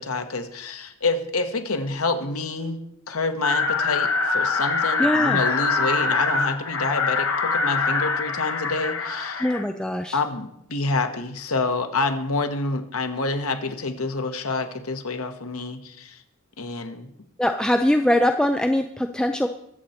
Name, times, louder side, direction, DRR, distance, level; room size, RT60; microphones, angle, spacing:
voice 1, 0.0-2.8 3.1-9.5 10.1-16.2 16.6-17.1, left 3 dB, 90° left, 6 dB, 1.3 m, -27 dB
sound 1, 3.4-9.6, left 4 dB, 70° left, 1.7 m, -24 dB
voice 2, 5.0-5.4 9.4-10.2 17.4-19.5, left 1 dB, 5° left, 6 dB, 0.4 m, -22 dB
22.5 x 7.9 x 4.3 m, 0.76 s
head